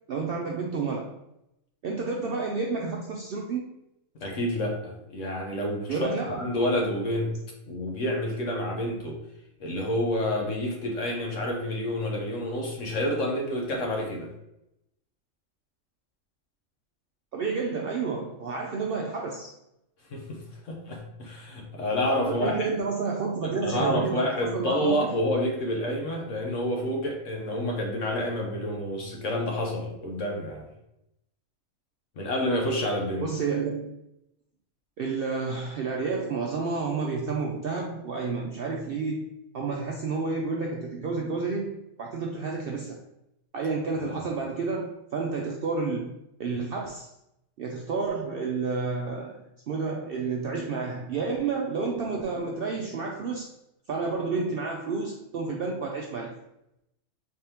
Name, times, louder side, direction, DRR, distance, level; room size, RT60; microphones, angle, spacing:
voice 1, 0.1-1.1 1.8-3.7 5.9-6.5 17.3-19.5 22.2-25.2 33.2-34.0 35.0-43.0 43.5-47.1 47.6-49.4 49.7-53.5 53.9-56.3, right 4 dB, 65° right, -1 dB, 0.5 m, -30 dB
voice 2, 4.1-7.4 7.7-9.2 9.6-14.3 20.1-22.7 23.6-30.7 32.1-33.3 44.1-44.3, left 1 dB, 65° left, 0 dB, 1.3 m, -29 dB
4.1 x 3.4 x 2.9 m, 0.84 s
omnidirectional pair, 1.4 m